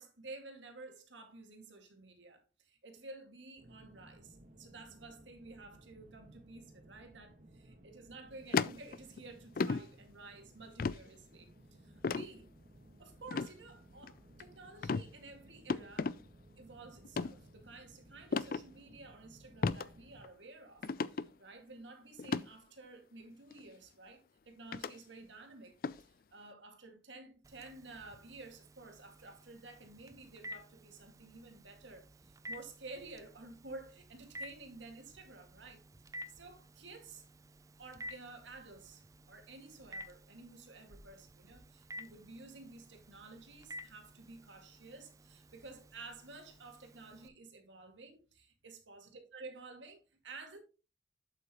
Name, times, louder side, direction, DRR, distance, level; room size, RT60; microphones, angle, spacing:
voice 1, 0.0-12.5 13.0-16.2 16.6-37.2 37.8-50.6, right 3 dB, 90° right, 2.0 m, -52 dB
sound 1, 3.6-20.2, right 1 dB, 45° right, 1.5 m, -60 dB
sound 2, 8.5-9.2 9.6-9.8 10.8-11.0 12.0-12.3 13.3-13.5 14.0-14.4 14.8-15.1 15.7-16.1 17.0-17.3 18.3-18.6 19.6-19.9 20.2-20.3 20.8-21.3 22.2-22.4 23.5-23.6 24.7-24.9 25.8-26.0, left 4 dB, 50° left, 0.4 m, -33 dB
Telephone, 27.4-47.3, equal, 20° right, 0.4 m, -53 dB
8.1 x 7.7 x 3.0 m
head